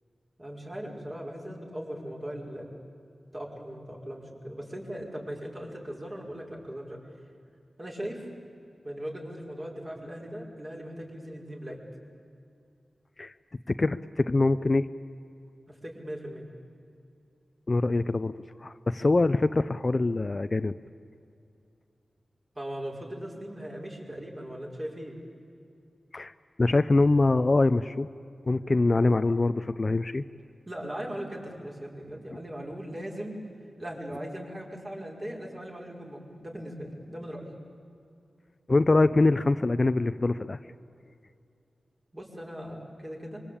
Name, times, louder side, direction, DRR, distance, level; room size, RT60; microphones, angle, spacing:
voice 1, 0.4-2.7 3.3-7.0 7.8-8.3 8.8-11.8 15.7-16.4 22.5-25.1 30.7-33.3 33.8-37.5 42.1-43.4, equal, 30° right, -1 dB, 5.7 m, -39 dB
voice 2, 13.7-14.9 17.7-18.3 18.6-20.7 26.1-26.3 26.6-28.1 28.5-30.2 38.7-40.6, left 2 dB, 40° left, 12 dB, 0.6 m, -24 dB
25.5 x 23.5 x 8.8 m, 2.6 s
wide cardioid pair, 80°, 0 cm